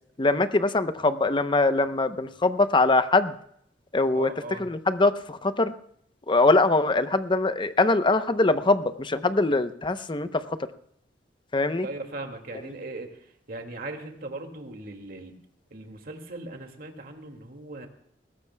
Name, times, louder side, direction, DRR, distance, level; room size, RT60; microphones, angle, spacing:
voice 1, 0.2-3.3 3.9-4.3 4.6-5.7 6.3-10.4 11.5-11.9, left 2 dB, 25° left, 11 dB, 0.7 m, -22 dB
voice 2, 4.1-4.7 11.8-15.3 15.7-17.9, right 2 dB, 55° right, 4 dB, 2.2 m, -38 dB
20.5 x 16.5 x 2.2 m, 0.68 s
head